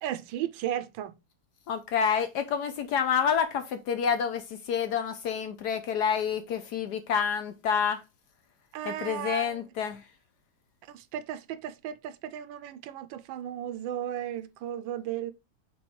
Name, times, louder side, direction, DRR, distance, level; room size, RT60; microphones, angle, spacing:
voice 1, 0.0-1.1 8.7-9.6 10.9-15.3, right 11 dB, 75° right, 1.3 m, -35 dB
voice 2, 1.7-8.0 8.8-10.0, left 7 dB, 70° left, 1.1 m, -28 dB
6.1 x 3.8 x 4.4 m
omnidirectional pair, 2.2 m